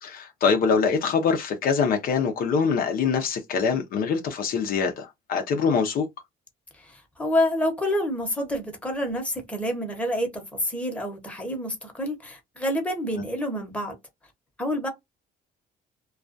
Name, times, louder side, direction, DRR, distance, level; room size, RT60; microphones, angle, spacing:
voice 1, 0.0-6.1, left 5 dB, 60° left, 0.6 m, -24 dB
voice 2, 6.8-13.9 14.6-14.9, equal, 5° left, 0.9 m, -28 dB
2.3 x 2.2 x 2.5 m
cardioid pair, 110°, 17 cm